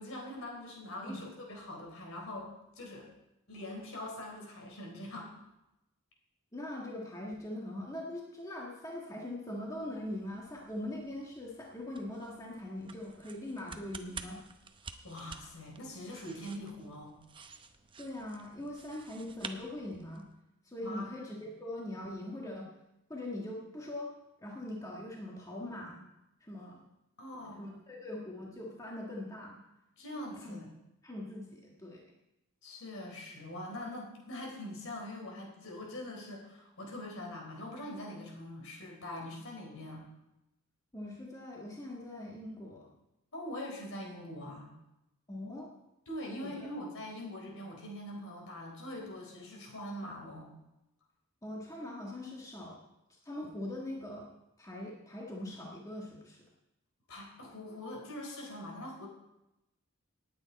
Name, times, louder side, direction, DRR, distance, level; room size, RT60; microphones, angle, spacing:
voice 1, 0.0-3.1 3.5-5.3 15.0-17.2 20.8-21.5 27.2-27.8 30.0-30.7 32.6-40.1 43.3-44.7 46.1-50.5 57.1-59.1, left 1 dB, 65° left, 0 dB, 3.9 m, -43 dB
voice 2, 6.5-14.4 18.0-20.3 20.6-22.7 23.1-24.1 24.4-26.0 26.4-26.8 27.6-29.6 30.4-30.6 31.0-32.0 40.9-42.9 45.3-45.7 46.4-46.7 51.4-52.8 53.2-54.3 54.6-56.4, left 1 dB, 15° left, -3 dB, 1.6 m, -41 dB
sound 1, 9.6-20.4, right 4 dB, 25° right, 0.7 m, -51 dB
19.0 x 8.7 x 4.2 m, 0.91 s
head